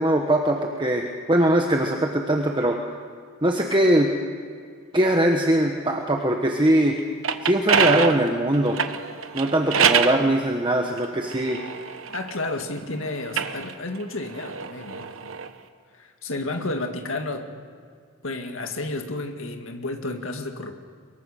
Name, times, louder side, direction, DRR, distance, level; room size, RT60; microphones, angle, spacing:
voice 1, 0.0-2.8 3.4-4.1 4.9-7.0 7.4-8.8 9.3-11.6, right 1 dB, 20° right, 2 dB, 1.3 m, -21 dB
sound 1, 7.0-10.2 11.0-12.7 13.2-15.5, right 6 dB, 75° right, 1.2 m, -25 dB
voice 2, 12.1-15.1 15.9-17.6 18.2-20.7, left 2 dB, 70° left, 5 dB, 2.0 m, -31 dB
24.0 x 22.5 x 6.6 m, 2.1 s
head